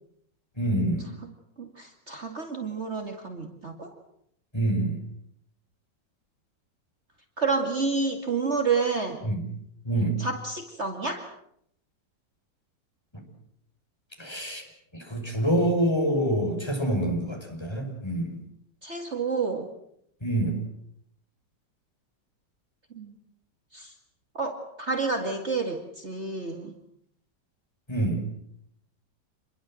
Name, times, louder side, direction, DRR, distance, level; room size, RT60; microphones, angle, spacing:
voice 1, 0.6-1.1 4.5-5.0 9.2-9.4 9.8-10.2 14.2-14.6 14.9-18.4 20.2-20.6 27.9-28.2, right 1 dB, 15° left, 2 dB, 6.1 m, -26 dB
voice 2, 1.6-3.9 7.4-9.2 10.2-11.3 18.8-19.7 22.9-23.1 23.7-23.9 24.3-26.7, right 4 dB, 40° right, 4 dB, 2.4 m, -29 dB
28.0 x 22.0 x 7.7 m, 0.72 s
omnidirectional pair, 1.9 m